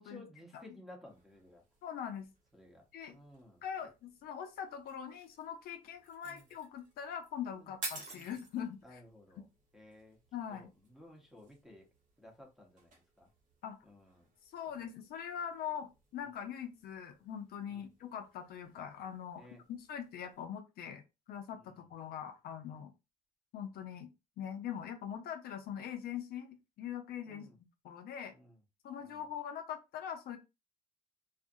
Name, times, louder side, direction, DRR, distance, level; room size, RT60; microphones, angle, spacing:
voice 1, 0.0-1.6 2.5-2.8 3.1-3.6 6.2-6.5 7.5-7.8 8.1-8.3 8.8-9.5 9.7-10.2 10.5-11.9 12.2-13.3 13.8-14.3 14.7-14.9 16.2-16.3 17.7-17.9 19.4-19.6 21.6-21.9 27.3-27.6 28.3-28.6 29.0-29.3, left 1 dB, ahead, 0.8 m, -56 dB
sound 1, 1.0-20.5, right 3 dB, 50° right, 1.1 m, -54 dB
voice 2, 1.8-2.3 2.9-3.2 3.6-9.0 10.3-10.7 13.6-13.8 14.5-21.0 21.3-22.9 23.5-24.1 24.4-28.3 28.8-30.4, left 8 dB, 65° left, 0.5 m, -42 dB
2.4 x 2.4 x 2.6 m
cardioid pair, 110°, 17 cm